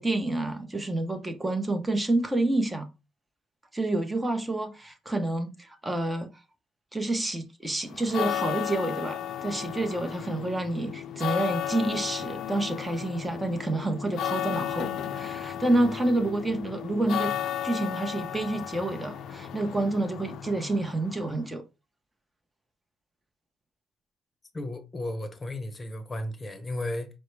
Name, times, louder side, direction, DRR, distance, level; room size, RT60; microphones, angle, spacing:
voice 1, 0.0-2.9 3.7-6.3 6.9-17.3 17.6-21.6, right 2 dB, 15° right, 1.0 m, -28 dB
sound 1, 7.9-21.4, left 10 dB, 60° left, 0.5 m, -34 dB
voice 2, 24.5-27.1, left 1 dB, 25° left, 1.0 m, -34 dB
4.6 x 2.2 x 4.5 m
supercardioid pair, 75°, 0 cm